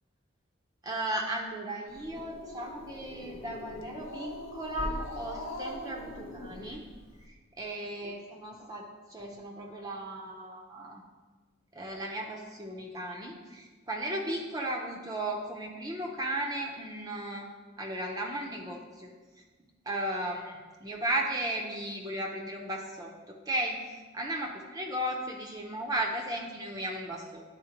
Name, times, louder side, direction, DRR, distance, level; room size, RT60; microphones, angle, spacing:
voice 1, 0.8-6.8 7.6-11.0 11.7-17.5 17.8-19.1 19.9-23.8 24.2-27.4, right 1 dB, 20° right, -1 dB, 0.5 m, -35 dB
Growling, 1.9-7.2, left 1 dB, 90° left, 0.7 m, -43 dB
10.0 x 4.2 x 2.9 m, 1.3 s
head